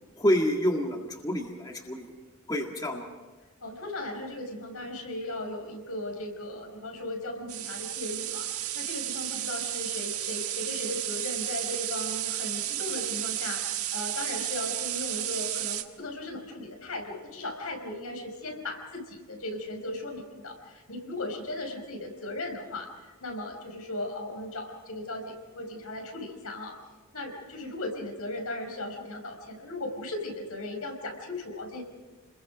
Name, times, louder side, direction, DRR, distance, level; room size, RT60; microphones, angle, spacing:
voice 1, 0.2-2.1 2.5-3.0, equal, 15° left, 1 dB, 1.9 m, -28 dB
voice 2, 3.6-26.8 27.1-31.8, left 1 dB, 85° left, 2 dB, 5.2 m, -37 dB
sound 1, 7.5-15.8, right 13 dB, 85° right, 1.5 m, -33 dB
30.0 x 21.5 x 5.2 m, 1.3 s
head